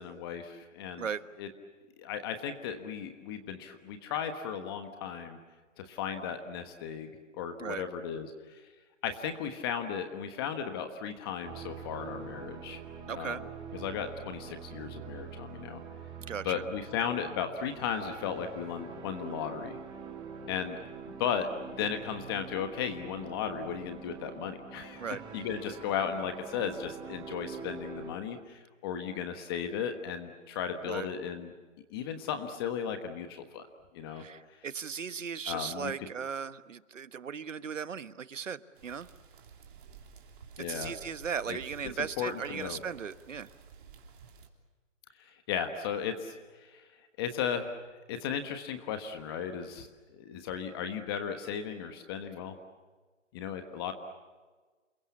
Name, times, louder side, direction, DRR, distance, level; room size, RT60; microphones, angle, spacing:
voice 1, 0.0-1.1 1.4-1.5 2.0-5.4 5.8-8.6 9.0-12.8 13.1-13.4 13.7-15.8 16.4-19.8 20.5-20.8 21.1-25.0 25.3-31.5 31.9-33.7 33.9-34.2 35.5-35.9 40.6-40.9 41.5-41.6 42.2-42.8 45.2-46.9 47.2-47.8 48.1-49.9 50.2-52.5 53.3-53.9, left 7 dB, 20° left, 8 dB, 1.3 m, -35 dB
sound 1, 11.4-28.1, right 6 dB, 10° right, 2.5 m, -45 dB
voice 2, 13.1-13.4 16.3-16.6 25.0-25.2 30.8-31.1 34.1-39.1 40.6-43.5, right 6 dB, 75° right, 14 dB, 1.4 m, -37 dB
sound 2, 38.8-44.5, right 6 dB, 40° right, 3.4 m, -52 dB
28.5 x 22.0 x 8.4 m, 1.3 s
hypercardioid pair, 160°, 38 cm